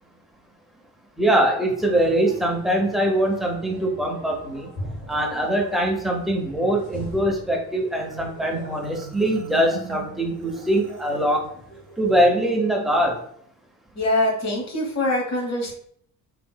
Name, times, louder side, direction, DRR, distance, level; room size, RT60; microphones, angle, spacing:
voice 1, 1.2-4.7 5.1-11.5 12.0-13.2, right 1 dB, ahead, -1 dB, 0.7 m, -22 dB
sound 1, 1.7-12.3, equal, 70° left, 1.3 m, -42 dB
Marimba xylophone, 8.0-11.3, right 7 dB, 40° right, 0.4 m, -40 dB
voice 2, 14.0-15.7, left 1 dB, 30° left, 0 dB, 1.1 m, -23 dB
3.5 x 3.0 x 2.2 m, 0.64 s
figure-of-eight pair, 45°, 49 cm